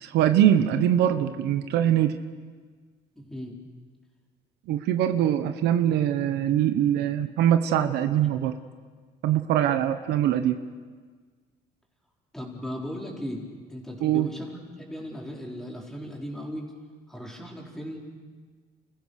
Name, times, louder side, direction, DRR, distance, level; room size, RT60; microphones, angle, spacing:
voice 1, 0.0-2.1 4.7-8.5 9.2-10.7 14.0-14.3, right 10 dB, 80° right, 9 dB, 1.2 m, -23 dB
voice 2, 3.2-3.6 12.3-13.4 13.7-16.7 17.1-18.0, equal, ahead, -2 dB, 4.4 m, -37 dB
29.5 x 15.5 x 6.6 m, 1.5 s
cardioid pair, 110°, 17 cm